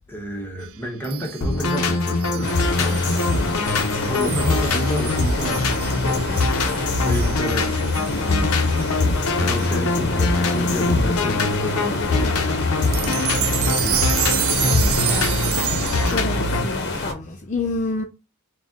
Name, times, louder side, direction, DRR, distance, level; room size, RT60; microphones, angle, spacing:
voice 1, 0.1-3.6 4.1-8.8 9.4-14.0, equal, 10° left, 0.9 m, -31 dB
sound 1, 1.0-9.0 9.6-9.8 10.6-10.7 12.8-16.1, right 12 dB, 65° right, 0.4 m, -29 dB
sound 2, 1.4-16.6, left 3 dB, 85° left, 0.7 m, -22 dB
sound 3, 2.4-17.1, left 3 dB, 50° left, 0.8 m, -28 dB
voice 2, 14.6-15.6 16.1-18.0, left 3 dB, 35° left, 0.4 m, -29 dB
4.1 x 2.3 x 3.6 m
head